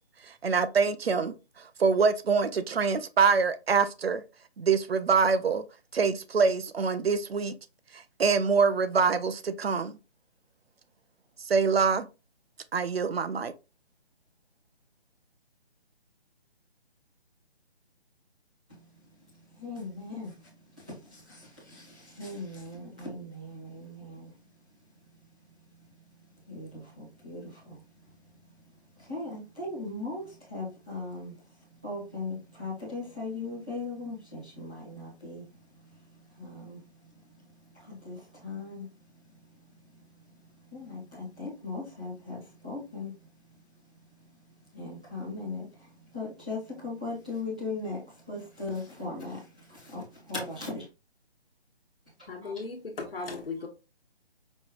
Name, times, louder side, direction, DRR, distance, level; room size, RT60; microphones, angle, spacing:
voice 1, 0.4-4.2 4.6-5.6 5.9-7.5 7.9-10.0 11.5-12.1 12.7-13.5, right 5 dB, 70° right, 0.6 m, -25 dB
voice 2, 19.5-24.3 26.5-27.8 29.0-31.4 31.7-37.4 37.6-38.9 40.4-43.3 44.0-44.3 44.7-50.9 52.4-52.6 53.6-53.7, left 3 dB, 5° right, 0.7 m, -39 dB
voice 3, 52.3-53.7, left 4 dB, 60° left, 1.3 m, -36 dB
5.2 x 3.0 x 2.4 m
hypercardioid pair, 175°, 32 cm